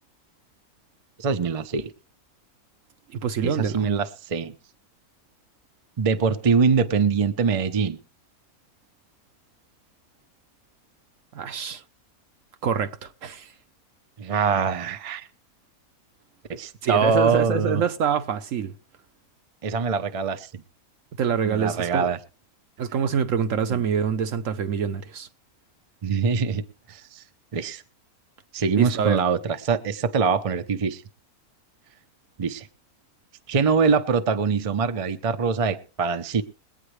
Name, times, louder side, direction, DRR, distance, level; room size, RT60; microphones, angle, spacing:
voice 1, 1.2-1.9 3.4-4.5 6.0-8.0 14.2-15.3 16.5-17.8 19.6-20.5 21.4-22.2 23.7-23.8 26.0-27.2 27.5-27.8 28.5-31.0 32.4-32.7 33.5-36.4, right 5 dB, 35° right, 0.6 m, -23 dB
voice 2, 3.1-3.9 11.3-11.8 12.6-13.5 16.8-18.7 21.2-22.1 22.8-25.3 28.7-29.2, right 7 dB, 65° right, 1.1 m, -26 dB
21.5 x 9.0 x 3.2 m
omnidirectional pair, 1.6 m